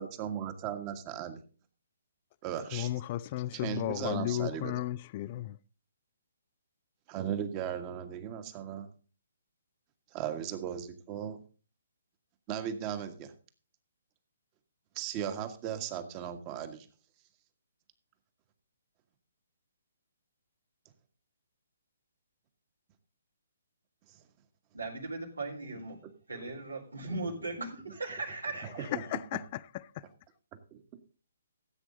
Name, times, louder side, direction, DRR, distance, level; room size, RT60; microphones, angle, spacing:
voice 1, 0.0-1.4 2.4-2.9 3.5-4.7 7.1-8.9 10.1-11.4 12.5-13.3 14.9-16.9 24.1-24.2 26.3-26.4 28.6-29.0 30.7-30.8, right 9 dB, 30° right, 1.7 m, -37 dB
voice 2, 2.7-5.6 28.7-29.9, left 14 dB, 35° left, 0.5 m, -34 dB
voice 3, 24.7-26.0 26.3-28.9, right 2 dB, 85° right, 4.3 m, -38 dB
15.0 x 8.2 x 3.9 m
figure-of-eight pair, 135°, 0 cm